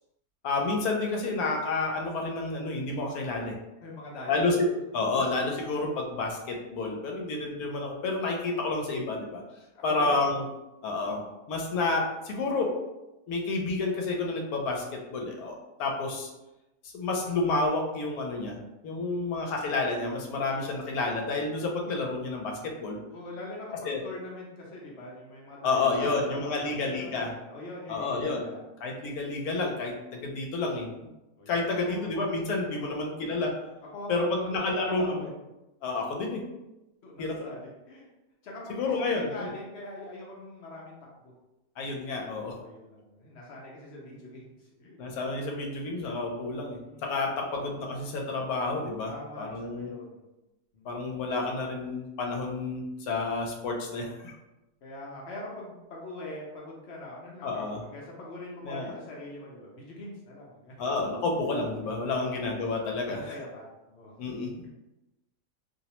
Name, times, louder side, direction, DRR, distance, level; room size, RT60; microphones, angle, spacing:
voice 1, 0.4-3.6 4.3-4.7 4.9-9.4 9.8-10.4 10.8-12.7 13.3-16.3 16.8-18.6 18.8-22.5 22.8-23.0 23.8-24.0 25.6-27.3 27.9-28.5 28.8-30.9 31.5-33.5 34.1-35.3 35.8-36.4 37.2-37.4 38.7-39.5 41.8-42.5 45.0-49.9 50.8-54.3 57.4-57.8 58.6-58.9 60.8-63.3 64.2-64.5, left 3 dB, 85° left, 0 dB, 1.1 m, -30 dB
voice 2, 3.8-4.5 9.7-10.1 23.1-28.6 31.4-32.0 32.8-33.2 33.9-35.4 37.0-38.1 38.4-41.3 42.3-45.0 46.9-47.1 49.0-50.2 50.7-50.9 54.8-61.1 62.2-62.4 62.9-64.1, left 1 dB, 60° left, -3 dB, 0.8 m, -43 dB
2.7 x 2.0 x 2.8 m, 0.97 s
omnidirectional pair, 1.5 m